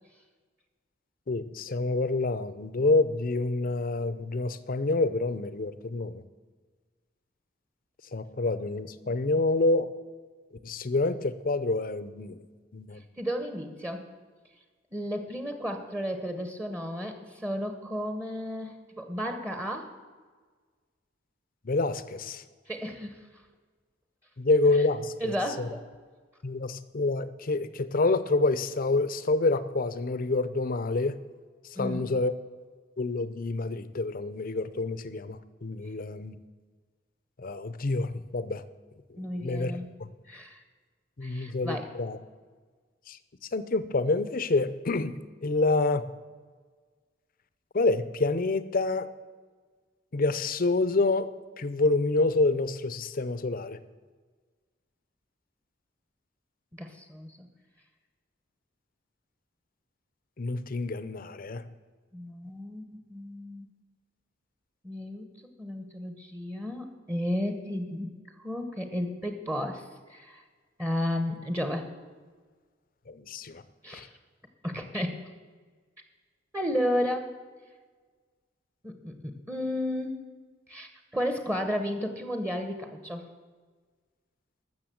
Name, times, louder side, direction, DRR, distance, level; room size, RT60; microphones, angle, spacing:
voice 1, 1.3-6.2 8.1-9.9 10.6-12.4 12.7-13.0 21.6-22.4 24.4-25.7 26.4-31.2 31.8-32.3 33.0-36.4 37.4-38.6 39.1-39.7 40.0-40.1 41.2-42.2 43.1-43.2 43.5-45.1 45.4-46.1 47.7-49.1 50.1-51.3 51.6-53.8 60.4-61.6 73.1-73.6 73.9-74.1, left 3 dB, 50° left, 14 dB, 0.7 m, -27 dB
voice 2, 13.2-14.0 14.9-19.9 22.7-23.2 25.2-25.8 31.8-32.0 39.2-39.9 40.3-40.6 41.2-41.9 56.7-57.5 62.1-63.7 64.8-65.3 65.6-68.1 68.4-70.4 70.8-71.8 73.8-74.1 74.6-75.2 76.5-77.3 78.8-79.1 79.5-80.2 80.7-83.2, equal, 15° right, 6 dB, 1.0 m, -33 dB
13.5 x 6.8 x 7.7 m, 1.5 s
head